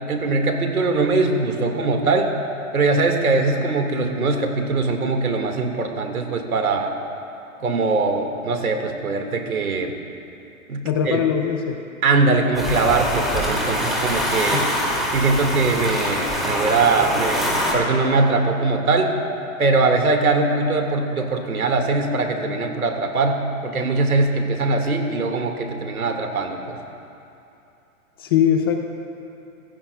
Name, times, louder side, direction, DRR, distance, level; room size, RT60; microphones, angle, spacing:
voice 1, 0.1-2.3 2.7-6.9 7.6-10.0 10.7-11.2 12.0-14.7 15.1-19.1 19.6-26.8, right 3 dB, 85° right, 4 dB, 1.9 m, -21 dB
voice 2, 10.8-11.8 14.4-14.7 28.2-28.8, left 8 dB, 20° left, 4 dB, 0.4 m, -21 dB
sound 1, 12.5-17.7, equal, ahead, 2.4 m, -24 dB
25.0 x 16.0 x 2.3 m, 2.7 s
hypercardioid pair, 125°, 43 cm